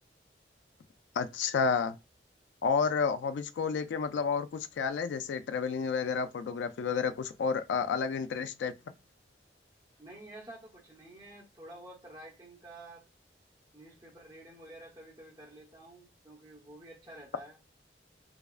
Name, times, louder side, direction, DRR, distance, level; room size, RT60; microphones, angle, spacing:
voice 1, 1.2-2.0 2.6-8.7, left 5 dB, 85° left, 0.3 m, -30 dB
voice 2, 10.0-13.0 13.7-17.6, right 1 dB, 25° right, 0.8 m, -50 dB
4.7 x 2.1 x 2.3 m
head